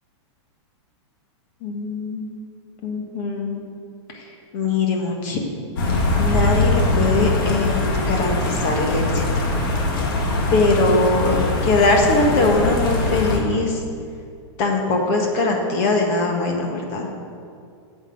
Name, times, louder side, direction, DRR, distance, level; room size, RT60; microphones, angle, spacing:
voice 1, 1.6-2.3 2.8-3.6 4.1-5.4 6.2-9.4 10.5-13.8 14.6-17.1, left 3 dB, 30° left, 2 dB, 1.5 m, -21 dB
sound 1, 5.8-13.4, left 2 dB, 45° left, 2.0 m, -22 dB
9.4 x 8.0 x 7.8 m, 2.3 s
supercardioid pair, 180°, 15 cm